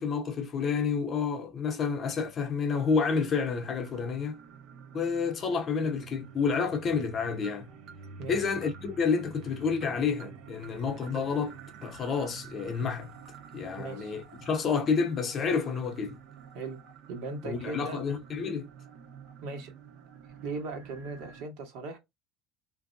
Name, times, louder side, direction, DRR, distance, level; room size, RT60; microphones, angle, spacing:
voice 1, 0.0-4.4 4.9-7.7 8.3-11.6 11.8-13.1 13.5-16.2 17.4-18.7, left 5 dB, 35° left, 0.6 m, -29 dB
sound 1, 2.7-21.4, right 6 dB, 55° right, 0.7 m, -49 dB
voice 2, 13.8-14.1 16.5-16.8 17.1-18.0 19.4-19.7 20.4-22.0, right 3 dB, 75° right, 1.3 m, -38 dB
3.2 x 2.6 x 2.6 m
cardioid pair, 145°, 0 cm